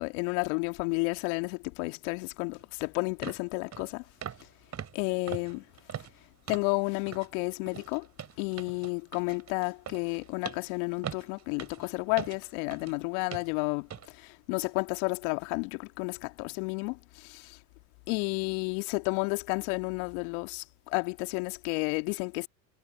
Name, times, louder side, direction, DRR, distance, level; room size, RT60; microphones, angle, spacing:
voice 1, 0.0-4.0 4.9-5.6 6.5-8.1 8.4-13.9 14.2-17.6 18.1-22.5, left 32 dB, 60° left, 1.9 m, -31 dB
sound 1, 2.6-2.7 3.2-3.4 3.7-3.9 4.2-4.5 4.7-6.8 7.1-7.3 7.7-13.0 13.3-13.5 13.9-14.1 14.5-14.7, right 8 dB, 35° right, 3.5 m, -42 dB
hypercardioid pair, 75°, 48 cm